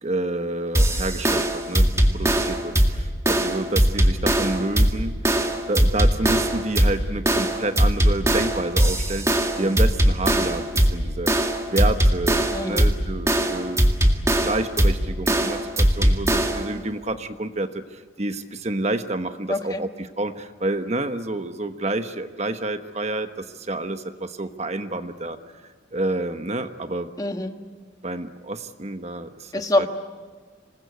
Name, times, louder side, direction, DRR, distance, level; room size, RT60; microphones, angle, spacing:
voice 1, 0.0-5.2 5.7-13.8 14.4-25.4 25.9-27.1 28.0-29.5 29.8-29.9, right 2 dB, 35° right, 8 dB, 1.1 m, -29 dB
sound 1, 0.7-16.7, right 1 dB, 15° right, 1.9 m, -20 dB
voice 2, 12.5-12.9 19.5-19.8 27.2-27.5 29.5-29.9, left 1 dB, 20° left, 6 dB, 1.4 m, -25 dB
26.5 x 20.5 x 8.1 m, 1.5 s
head